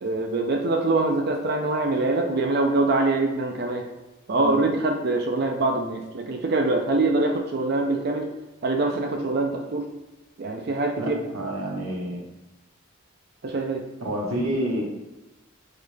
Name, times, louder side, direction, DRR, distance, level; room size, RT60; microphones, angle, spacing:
voice 1, 0.0-3.8 4.3-8.3 8.6-9.9 10.4-11.2 13.4-13.8, right 2 dB, 50° right, 3 dB, 0.4 m, -24 dB
voice 2, 11.0-12.2 14.0-14.8, right 1 dB, 80° right, -2 dB, 1.0 m, -29 dB
3.8 x 3.2 x 3.3 m, 1.0 s
head